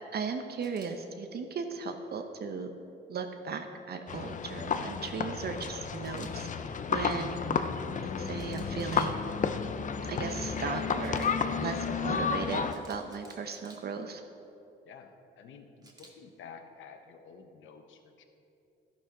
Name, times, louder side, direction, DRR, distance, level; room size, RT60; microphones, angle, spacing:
voice 1, 0.1-2.7 3.1-6.5 6.9-7.6 8.2-9.2 10.1-11.3 11.6-14.2, right 5 dB, 55° right, 6 dB, 0.9 m, -36 dB
Camera, 0.6-0.9 6.0-6.3 8.4-9.1 11.0-11.3 12.7-13.8 15.8-16.1, right 2 dB, 20° right, 1.8 m, -54 dB
sound 1, 4.1-12.7, left 6 dB, 40° left, 0.6 m, -32 dB
voice 2, 14.8-18.2, left 6 dB, 75° left, 6 dB, 1.0 m, -51 dB
12.5 x 11.5 x 3.8 m, 2.8 s
cardioid pair, 90°, 20 cm